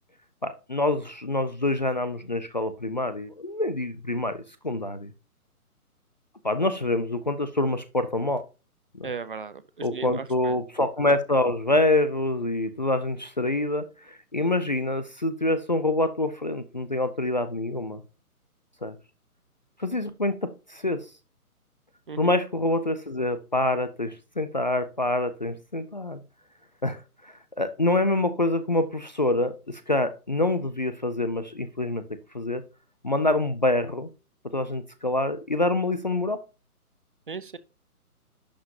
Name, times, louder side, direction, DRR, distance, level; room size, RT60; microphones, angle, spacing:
voice 1, 0.4-5.1 6.4-8.4 8.9-9.1 9.8-18.0 18.8-19.0 19.8-21.1 22.2-26.2 26.8-32.0 32.3-32.6 33.0-34.1 34.4-36.4, left 2 dB, 30° left, 0.4 m, -26 dB
voice 2, 9.0-10.6 22.1-22.3 37.3-37.6, right 5 dB, 35° right, 0.6 m, -36 dB
11.0 x 5.6 x 2.8 m
figure-of-eight pair, 140°, 45 cm